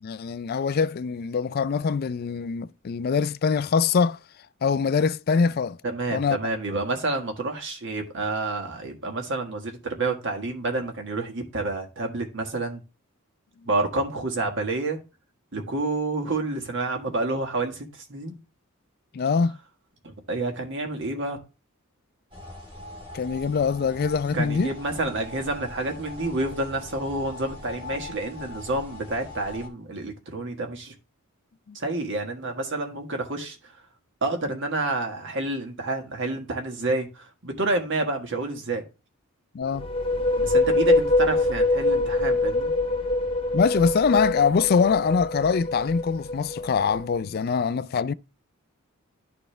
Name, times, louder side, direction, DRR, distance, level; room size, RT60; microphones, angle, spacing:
voice 1, 0.0-4.2 4.6-5.8 6.1-6.4 19.1-19.6 23.1-24.7 31.7-31.8 39.5-39.9 43.5-48.1, left 5 dB, 45° left, 0.3 m, -23 dB
voice 2, 5.8-12.8 13.6-15.0 15.5-18.4 20.0-21.4 24.3-30.9 31.7-33.6 34.2-38.8 40.4-42.7, right 2 dB, 55° right, 1.6 m, -29 dB
sound 1, 22.3-29.7, left 2 dB, 25° right, 1.8 m, -41 dB
sound 2, 39.6-47.2, left 2 dB, 25° left, 0.8 m, -24 dB
11.5 x 4.2 x 3.3 m
head